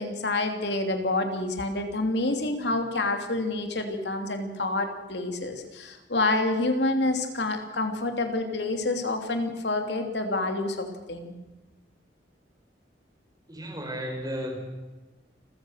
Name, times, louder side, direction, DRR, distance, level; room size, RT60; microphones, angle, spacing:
voice 1, 0.0-11.3, left 2 dB, 75° left, 5 dB, 2.9 m, -28 dB
voice 2, 13.5-14.6, equal, 20° right, 2 dB, 5.1 m, -33 dB
29.0 x 15.0 x 6.5 m, 1.2 s
head